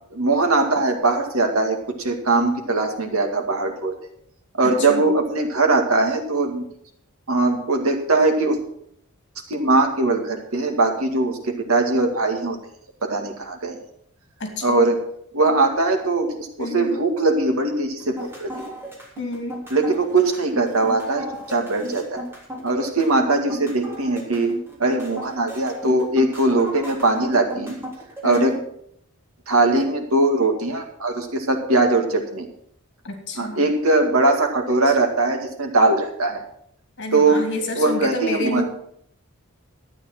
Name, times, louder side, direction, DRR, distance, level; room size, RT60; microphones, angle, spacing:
voice 1, 0.1-3.9 4.6-6.6 7.3-8.6 9.5-12.6 13.0-13.8 14.6-15.0 15.3-18.7 19.7-22.2 22.6-24.5 24.8-27.8 28.2-28.5 29.5-32.5 33.4-36.4 37.1-37.4 37.8-38.6, right 2 dB, 80° right, 4 dB, 2.2 m, -20 dB
voice 2, 4.6-5.1 14.4-14.9 16.6-17.0 19.2-19.6 28.2-28.6 33.0-33.7 37.0-38.6, left 1 dB, 55° left, 4 dB, 2.7 m, -29 dB
sound 1, 18.0-28.6, equal, 10° right, 3.3 m, -35 dB
12.5 x 8.8 x 6.0 m, 0.68 s
head